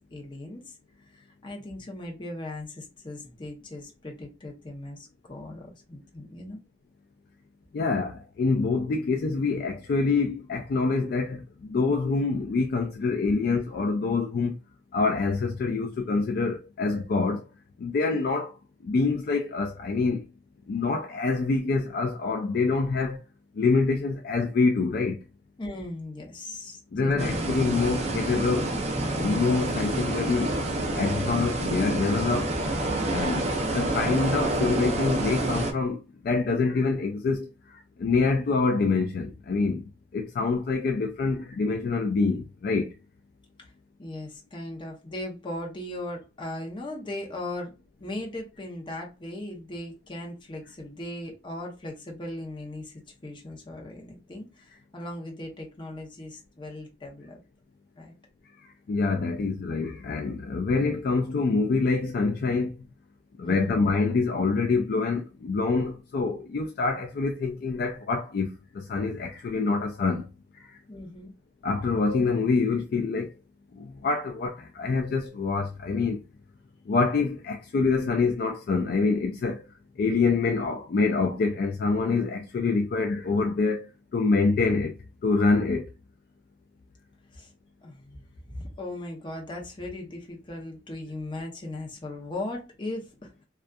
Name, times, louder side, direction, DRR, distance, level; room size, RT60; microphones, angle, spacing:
voice 1, 0.1-0.8 1.1-6.6 25.6-27.7 43.6-43.7 44.0-47.7 48.0-57.4 58.0-58.1 63.4-63.8 70.9-71.3 87.3-87.5 87.8-93.4, left 1 dB, 25° left, 0.7 m, -38 dB
voice 2, 7.7-14.6 14.9-17.4 17.8-18.5 18.8-20.2 20.7-23.2 23.6-25.2 26.9-28.8 29.1-30.5 31.0-32.5 33.1-36.0 36.2-37.5 38.0-39.8 40.1-42.9 58.9-62.7 63.4-68.5 68.8-70.2 71.6-73.3 74.0-76.2 76.9-79.6 80.0-83.9 84.1-84.9 85.2-85.8, left 4 dB, 55° left, 0.3 m, -26 dB
sound 1, 27.2-35.7, right 2 dB, 35° right, 0.5 m, -28 dB
2.6 x 2.3 x 2.2 m
head